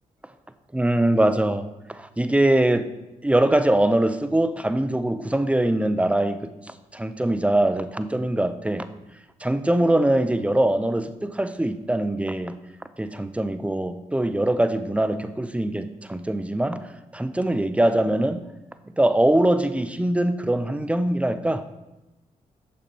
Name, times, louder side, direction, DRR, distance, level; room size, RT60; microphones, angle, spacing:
voice 1, 0.7-1.6 1.9-2.9 3.2-6.5 6.9-8.9 9.4-12.6 13.0-16.8 17.1-18.5 19.0-21.6, right 1 dB, 10° right, 11 dB, 0.5 m, -22 dB
8.4 x 6.6 x 2.8 m, 0.98 s
supercardioid pair, 50°, 15 cm